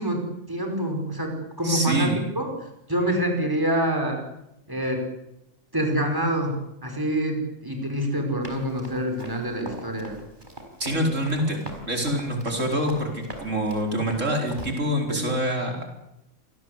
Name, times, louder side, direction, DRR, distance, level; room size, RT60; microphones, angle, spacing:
voice 1, 0.0-2.1 2.4-2.5 2.9-4.2 4.7-5.0 5.7-10.2 11.0-11.1 15.1-15.2, right 1 dB, 15° right, 3 dB, 5.3 m, -26 dB
voice 2, 1.6-2.2 10.8-15.8, equal, 90° right, 3 dB, 4.9 m, -26 dB
Run, 8.4-14.7, right 1 dB, 40° right, 4.8 m, -40 dB
27.5 x 18.5 x 8.2 m, 0.86 s
omnidirectional pair, 1.3 m